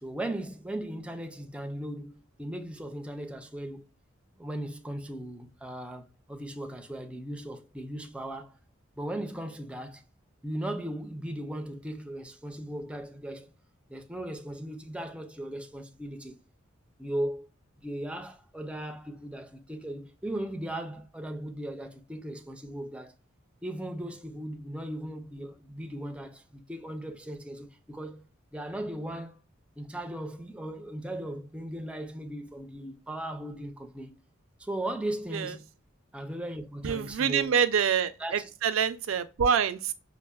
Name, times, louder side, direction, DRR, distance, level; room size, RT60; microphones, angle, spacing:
voice 1, 0.0-3.9 4.4-8.6 9.0-10.0 10.4-13.5 13.9-16.4 17.0-17.5 17.8-23.1 23.6-28.2 28.5-29.4 29.8-34.1 34.6-35.6 36.1-37.5 38.2-38.5, right 1 dB, 5° right, 0.4 m, -37 dB
voice 2, 36.8-39.9, right 7 dB, 80° right, 0.4 m, -26 dB
5.2 x 2.0 x 2.2 m
head